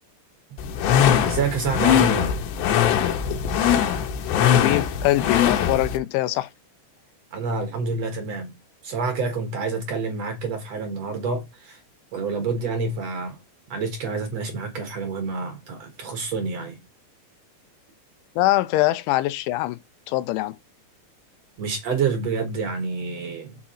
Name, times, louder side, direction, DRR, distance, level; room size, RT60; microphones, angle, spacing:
sound 1, 0.6-6.0, left 9 dB, 75° left, 3.0 m, -21 dB
voice 1, 1.2-2.3 7.3-8.5 8.8-11.8 12.1-13.4 13.7-16.8 21.6-23.6, right 4 dB, 70° right, 1.5 m, -28 dB
voice 2, 4.5-6.5 18.4-19.8 20.1-20.5, left 17 dB, 90° left, 3.1 m, -23 dB
7.3 x 5.9 x 4.3 m
omnidirectional pair, 5.4 m